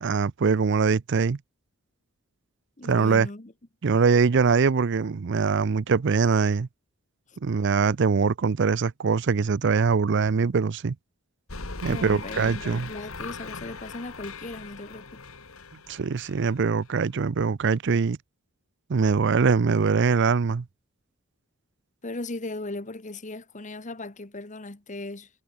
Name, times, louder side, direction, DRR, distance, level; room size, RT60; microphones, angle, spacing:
voice 1, 0.0-1.4 2.8-3.3 3.8-6.7 7.4-11.0 11.8-12.9 15.9-18.2 18.9-20.6, right 5 dB, 55° right, 0.5 m, -23 dB
voice 2, 2.8-3.5 7.3-7.4 11.8-15.2 22.0-25.3, left 2 dB, 35° left, 1.4 m, -37 dB
sound 1, 11.5-16.9, left 4 dB, 75° left, 2.3 m, -40 dB
head